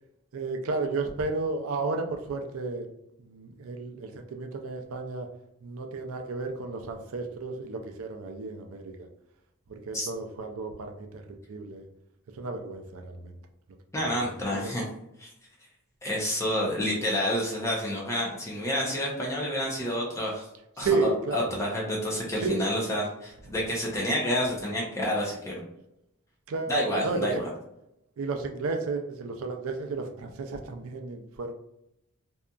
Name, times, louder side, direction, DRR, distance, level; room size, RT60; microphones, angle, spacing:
voice 1, 0.3-2.9 3.2-5.3 5.6-9.1 9.7-11.9 12.3-13.3 14.0-14.7 20.8-21.5 22.4-22.7 26.5-27.5 28.2-31.5, right 3 dB, 75° right, 5 dB, 0.4 m, -32 dB
voice 2, 13.9-14.8 15.2-15.3 16.0-20.5 20.8-20.9 21.3-25.6 26.7-27.5, equal, 15° left, -3 dB, 0.5 m, -29 dB
2.7 x 2.4 x 2.2 m, 0.83 s
head